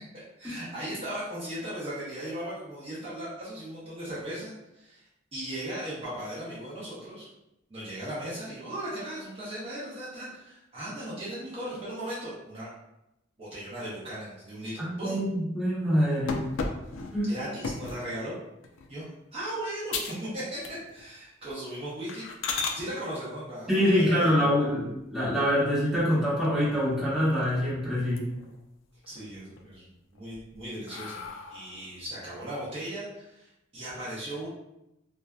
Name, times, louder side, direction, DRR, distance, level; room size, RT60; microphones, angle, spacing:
voice 1, 0.1-5.0 5.3-7.3 7.7-12.7 13.4-15.2 17.3-18.4 18.9-22.3 22.7-24.5 29.1-31.2 31.5-34.5, right 1 dB, 30° right, -8 dB, 0.6 m, -37 dB
voice 2, 14.8-16.4 17.1-17.3 23.7-28.3, equal, ahead, -10 dB, 0.8 m, -25 dB
sound 1, 16.3-18.1 18.6-18.9 19.4-19.5 19.9-20.3 20.6-21.1 21.4-21.6 22.1-22.8 24.8-25.5 25.9-26.0 26.4-26.5 26.8-27.6 28.0-28.6 29.0-29.6 30.1-31.9, left 4 dB, 85° left, 0.3 m, -36 dB
2.5 x 2.2 x 2.2 m, 0.89 s
head